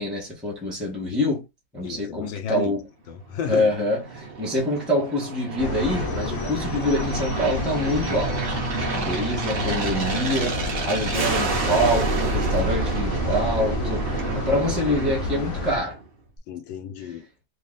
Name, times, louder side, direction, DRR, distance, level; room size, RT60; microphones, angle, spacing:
voice 1, 0.0-1.4 1.7-2.8 3.5-16.0, left 1 dB, ahead, 1.1 m, -26 dB
voice 2, 1.8-2.7 3.1-3.7 16.5-17.3, left 8 dB, 85° left, 1.4 m, -32 dB
Aircraft, 3.4-16.1, right 3 dB, 50° right, 0.7 m, -29 dB
sound 1, 5.6-15.8, left 3 dB, 60° left, 1.0 m, -30 dB
3.2 x 2.3 x 3.9 m
omnidirectional pair, 2.0 m